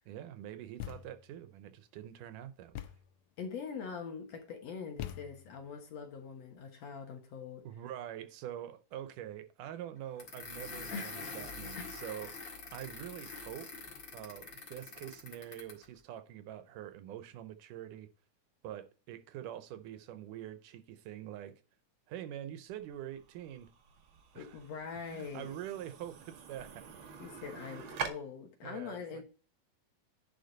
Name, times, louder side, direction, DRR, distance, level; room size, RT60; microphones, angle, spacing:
voice 1, 0.1-2.9 7.6-12.4 12.7-13.7 14.1-18.1 18.6-21.6 22.1-23.7 24.3-24.6 25.1-26.9 28.0-28.2 28.6-29.2, right 11 dB, 80° right, 2.3 m, -45 dB
Thump thud, 0.8-1.4 2.7-3.2 5.0-5.7, left 13 dB, 85° left, 1.5 m, -44 dB
voice 2, 3.4-7.7 10.9-11.2 11.8-12.3 24.4-25.5 27.2-29.2, left 6 dB, 60° left, 2.2 m, -43 dB
sound 1, 10.2-15.8, left 4 dB, 40° left, 2.1 m, -45 dB
sound 2, 22.7-28.1, right 6 dB, 65° right, 1.3 m, -45 dB
10.5 x 4.8 x 4.0 m
omnidirectional pair, 3.8 m